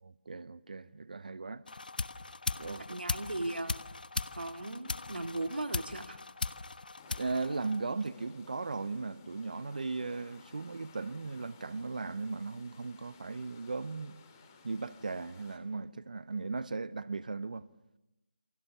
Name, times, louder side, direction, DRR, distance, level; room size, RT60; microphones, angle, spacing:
voice 1, 0.0-1.6 2.6-2.8 7.2-14.2 14.6-17.7, right 3 dB, 50° right, 0.9 m, -37 dB
sound 1, 1.7-8.2, left 3 dB, 55° left, 1.1 m, -39 dB
voice 2, 2.9-3.8 4.3-6.2, right 2 dB, 65° right, 2.4 m, -37 dB
sound 2, 7.0-15.6, left 5 dB, 20° left, 2.8 m, -57 dB
28.5 x 26.5 x 7.2 m
figure-of-eight pair, 160°, 6 cm